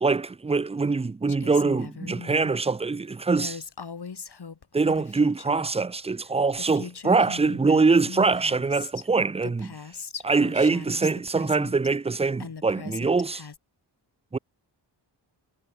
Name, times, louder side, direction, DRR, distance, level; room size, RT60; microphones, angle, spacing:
voice 1, 0.0-3.6 4.7-9.7 10.2-13.4 14.3-14.4, right 4 dB, 15° right, 0.4 m, -23 dB
Female speech woman speaking, 1.3-2.5 3.4-5.7 6.3-6.4 6.6-9.1 9.4-11.9 12.4-13.6, left 5 dB, 60° left, 7.7 m, -40 dB
cardioid pair, 80°, 44 cm